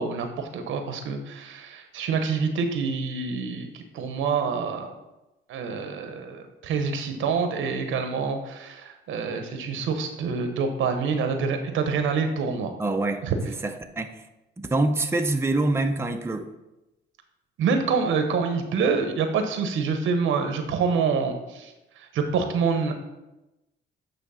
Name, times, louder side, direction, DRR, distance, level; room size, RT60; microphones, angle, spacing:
voice 1, 0.0-4.9 5.5-12.7 13.2-13.3 17.6-21.7 22.0-22.9, right 5 dB, 80° right, 6 dB, 1.0 m, -26 dB
voice 2, 12.8-13.2 13.6-14.2 14.6-16.5, right 2 dB, 10° right, 5 dB, 0.6 m, -25 dB
8.9 x 3.3 x 5.6 m, 0.97 s
cardioid pair, 90°, 20 cm